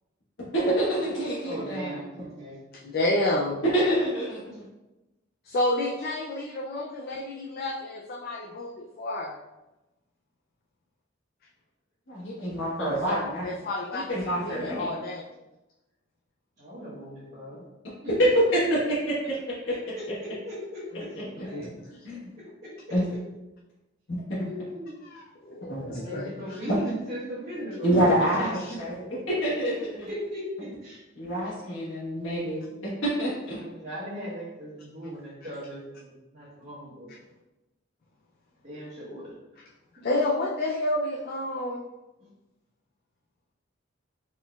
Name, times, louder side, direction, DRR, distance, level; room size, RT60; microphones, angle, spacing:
voice 1, 0.5-1.9 3.6-4.6 12.1-13.5 13.9-14.9 18.2-19.9 21.6-21.7 22.0-22.3 22.9-23.0 24.1-24.4 25.7-26.0 27.8-30.1 31.2-33.6, right 1 dB, 75° left, -9 dB, 1.2 m, -27 dB
voice 2, 1.4-2.6 16.6-17.6 18.0-18.1 19.9-22.0 22.6-22.7 24.4-25.0 25.9-28.5 30.0-31.0 31.6-31.7 33.6-37.1 38.6-39.3 42.2-42.3, equal, 40° right, -12 dB, 1.3 m, -38 dB
voice 3, 2.7-3.6 5.4-9.4 13.1-15.2 21.5-21.7 25.0-26.6 28.6-28.7 40.0-41.8, left 1 dB, 50° left, 0 dB, 0.3 m, -30 dB
4.2 x 3.8 x 2.3 m, 1.0 s
head